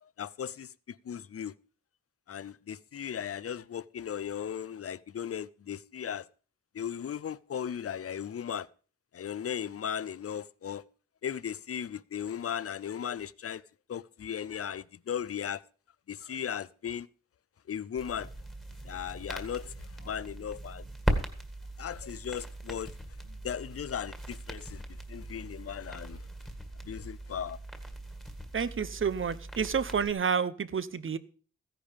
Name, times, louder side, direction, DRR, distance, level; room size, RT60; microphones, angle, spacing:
voice 1, 0.0-1.5 2.3-6.3 6.7-8.7 9.1-10.8 11.2-13.6 13.9-15.6 16.1-17.1 17.7-18.3 18.8-20.9 21.8-22.9 23.2-26.3 26.8-27.6, left 8 dB, 50° left, 0.6 m, -37 dB
sound 1, 18.0-30.1, right 1 dB, ahead, 1.8 m, -39 dB
voice 2, 28.5-31.2, right 6 dB, 45° right, 0.8 m, -29 dB
15.5 x 10.0 x 5.2 m
wide cardioid pair, 160°, 29 cm